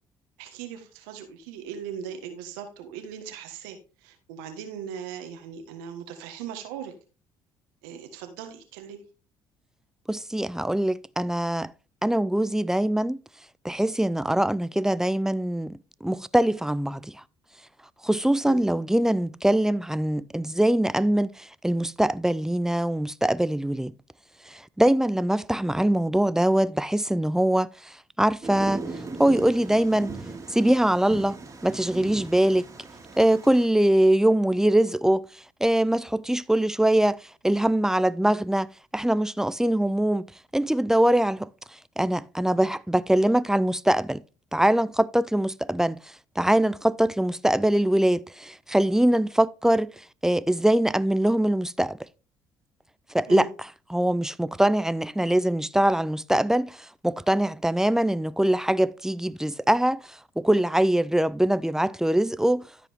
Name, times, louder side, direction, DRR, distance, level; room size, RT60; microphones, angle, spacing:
voice 1, 0.4-6.9 7.8-9.0 18.4-18.6 53.3-53.5, right 8 dB, 85° right, 1.5 m, -39 dB
voice 2, 10.1-11.7 12.0-13.2 13.6-17.2 18.0-23.9 24.4-28.8 29.2-30.2 30.5-32.7 33.2-44.2 44.5-52.1 53.1-53.5 53.9-62.7, right 1 dB, 5° right, 0.5 m, -23 dB
Thunder, 28.4-33.7, right 3 dB, 30° right, 2.5 m, -38 dB
13.0 x 5.0 x 3.5 m
hypercardioid pair, 65°, 10 cm